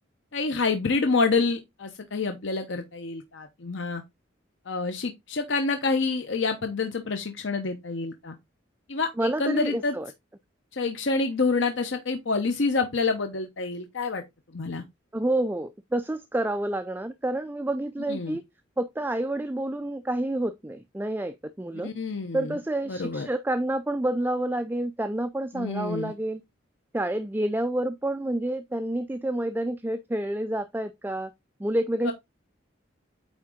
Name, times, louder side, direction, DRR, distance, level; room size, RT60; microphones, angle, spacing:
voice 1, 0.3-4.0 4.7-8.3 8.9-9.9 10.7-14.2 14.5-14.8 18.1-18.4 21.8-22.6 22.9-23.3 25.5-26.1 32.0-32.1, left 4 dB, 70° left, 0.8 m, -27 dB
voice 2, 9.2-10.1 15.1-18.4 18.8-21.9 22.3-26.4 26.9-31.3 31.6-32.1, right 1 dB, 10° right, 0.4 m, -28 dB
8.9 x 3.7 x 3.7 m
head